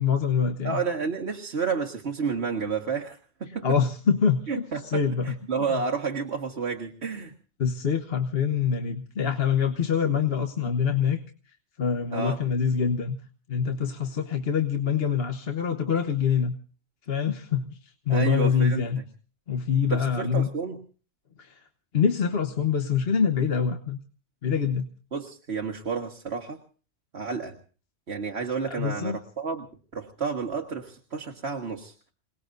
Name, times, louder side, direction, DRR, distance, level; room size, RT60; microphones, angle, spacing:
voice 1, 0.0-0.8 3.6-5.7 7.6-11.2 11.8-13.1 13.5-16.6 17.1-19.0 19.5-20.5 21.4-21.6 21.9-24.0 24.4-24.9 28.7-29.2, left 6 dB, 60° left, 6 dB, 1.3 m, -25 dB
voice 2, 0.6-3.7 4.5-7.3 12.1-12.4 18.1-19.0 19.9-20.8 25.1-26.6 27.1-27.6 28.1-29.7 29.9-31.9, right 5 dB, 65° right, 1 dB, 1.8 m, -31 dB
28.0 x 19.5 x 2.6 m, 0.38 s
omnidirectional pair, 1.2 m